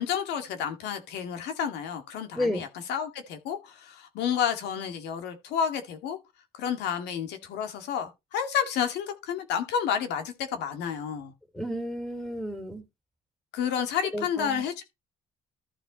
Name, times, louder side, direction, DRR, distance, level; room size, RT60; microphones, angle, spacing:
voice 1, 0.0-6.2 6.5-11.3 13.5-14.8, left 8 dB, 85° left, 2.0 m, -30 dB
voice 2, 2.3-2.6 11.6-12.8 14.1-14.6, left 1 dB, ahead, 2.8 m, -31 dB
14.0 x 4.6 x 4.1 m
cardioid pair, 110°, 17 cm